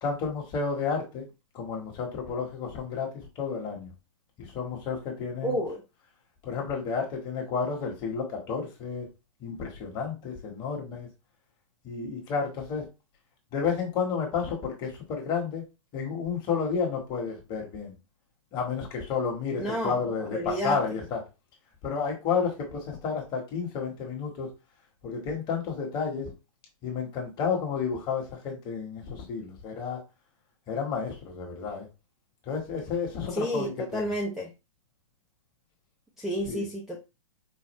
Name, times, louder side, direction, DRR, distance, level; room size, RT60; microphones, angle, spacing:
voice 1, 0.0-1.3 1.5-3.9 4.4-5.6 6.4-9.1 9.4-11.1 11.8-12.9 13.5-15.6 15.9-17.9 18.5-21.2 21.8-24.5 25.0-26.3 26.8-30.0 30.7-31.9 32.5-34.1 36.5-36.7, left 5 dB, 25° left, 0 dB, 1.4 m, -31 dB
voice 2, 5.4-5.8 19.6-20.0 20.3-20.8 33.3-34.5 36.2-37.0, equal, ahead, -3 dB, 0.6 m, -30 dB
4.8 x 2.4 x 3.2 m, 0.26 s
hypercardioid pair, 150°, 17 cm